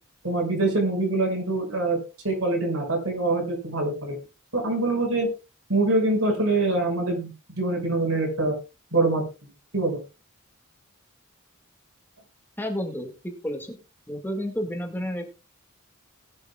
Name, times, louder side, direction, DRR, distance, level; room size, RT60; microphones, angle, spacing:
voice 1, 0.2-2.0 2.2-4.1 4.5-5.3 5.7-7.3 7.6-8.5 8.9-9.2 9.7-10.0, right 2 dB, 70° right, 0 dB, 6.4 m, -24 dB
voice 2, 12.6-13.8 14.1-15.3, equal, 10° left, 4 dB, 2.0 m, -31 dB
21.0 x 8.2 x 2.4 m, 0.29 s
head